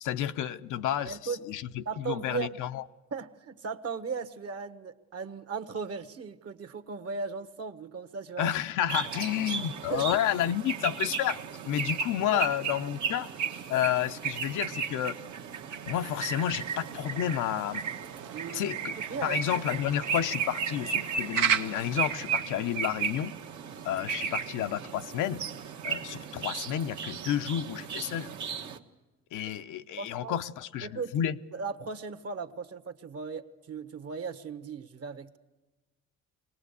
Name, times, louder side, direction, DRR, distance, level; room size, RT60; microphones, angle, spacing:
voice 1, 0.0-2.8 8.4-13.3 13.7-15.2 15.9-17.8 18.5-18.9 19.2-23.3 23.8-25.4 25.8-28.3 29.3-31.4, left 11 dB, 80° left, 9 dB, 0.8 m, -30 dB
voice 2, 1.0-1.4 1.8-2.6 3.1-8.5 9.9-10.2 12.3-12.5 18.3-18.6 19.0-19.6 30.0-30.4 30.8-35.4, right 5 dB, 50° right, 9 dB, 1.3 m, -37 dB
sound 1, 8.9-28.8, right 6 dB, 70° right, 1.4 m, -35 dB
sound 2, 16.0-22.4, right 8 dB, 85° right, 1.1 m, -36 dB
23.0 x 19.0 x 8.2 m, 1.2 s
cardioid pair, 90°, 30 cm